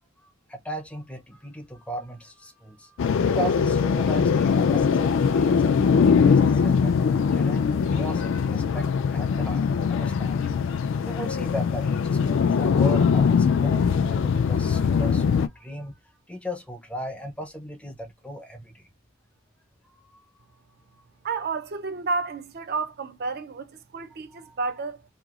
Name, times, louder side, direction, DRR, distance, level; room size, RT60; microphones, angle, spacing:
voice 1, 0.2-3.0 3.2-16.0 16.3-18.9 19.9-20.2 24.3-24.6, equal, 5° left, 0.5 m, -37 dB
sound 1, 3.0-15.5, left 6 dB, 60° left, 0.3 m, -21 dB
voice 2, 21.2-25.0, right 4 dB, 50° right, 0.5 m, -31 dB
2.9 x 2.4 x 2.4 m
head